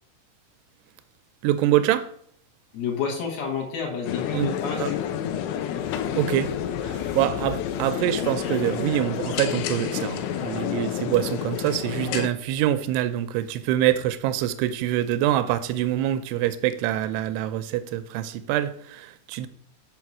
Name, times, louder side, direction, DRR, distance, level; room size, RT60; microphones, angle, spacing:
voice 1, 1.4-2.1 4.3-4.9 6.1-6.5 6.8-19.5, right 12 dB, 85° right, 2.7 m, -25 dB
voice 2, 2.7-5.0, left 6 dB, 70° left, 3.3 m, -29 dB
sound 1, 4.1-12.3, left 9 dB, 90° left, 2.9 m, -29 dB
7.0 x 5.6 x 6.1 m
omnidirectional pair, 4.8 m